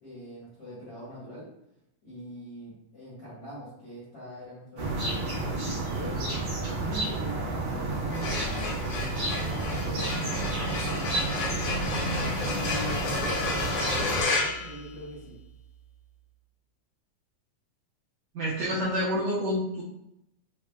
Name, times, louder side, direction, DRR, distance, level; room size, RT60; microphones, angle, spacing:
voice 1, 0.0-1.5 2.0-8.5 9.0-11.3 11.8-15.3, equal, 55° left, -11 dB, 1.2 m, -42 dB
sound 1, 4.8-14.2, right 2 dB, 65° right, 1.1 m, -31 dB
sound 2, 8.0-15.4, left 3 dB, 75° left, 1.7 m, -32 dB
voice 2, 18.3-19.8, equal, 85° right, -6 dB, 1.6 m, -28 dB
5.6 x 2.1 x 2.2 m, 0.82 s
omnidirectional pair, 3.7 m